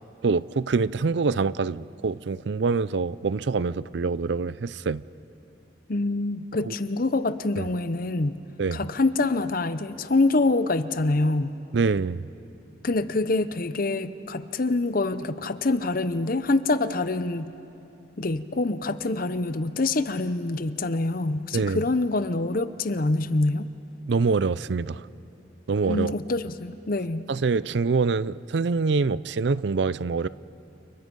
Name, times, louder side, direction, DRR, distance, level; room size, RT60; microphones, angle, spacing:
voice 1, 0.2-5.0 6.7-6.8 7.6-7.7 8.6-8.8 11.7-12.2 21.5-21.8 24.1-25.1 25.7-26.1 27.3-30.3, right 4 dB, 65° right, 18 dB, 0.5 m, -25 dB
voice 2, 5.9-8.4 8.7-11.6 12.8-17.5 18.2-23.7 25.9-27.2, left 2 dB, 50° left, 13 dB, 0.8 m, -25 dB
30.0 x 29.0 x 5.4 m, 2.8 s
head